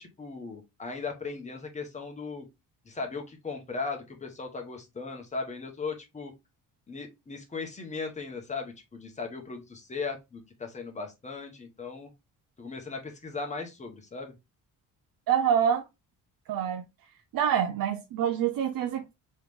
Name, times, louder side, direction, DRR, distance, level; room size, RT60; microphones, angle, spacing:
voice 1, 0.0-2.5 2.8-6.3 6.9-12.1 12.6-14.3, left 4 dB, 20° left, 1.0 m, -37 dB
voice 2, 15.3-15.8 16.5-16.8 17.3-19.1, right 9 dB, 80° right, 0.6 m, -26 dB
3.6 x 3.2 x 3.4 m
wide cardioid pair, 165°, 34 cm